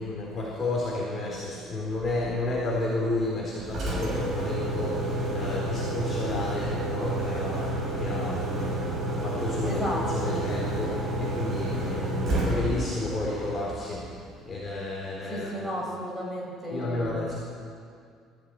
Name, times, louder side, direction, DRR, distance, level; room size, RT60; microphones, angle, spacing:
voice 1, 0.0-9.8 10.1-14.0 14.5-15.5 16.7-17.3, left 2 dB, 25° left, -4 dB, 4.0 m, -32 dB
Engine, 3.6-14.5, right 1 dB, 30° right, 6.2 m, -30 dB
voice 2, 9.6-10.4 15.3-17.1, equal, ahead, -5 dB, 6.1 m, -33 dB
21.0 x 15.0 x 9.3 m, 2.2 s
cardioid pair, 170°, 0 cm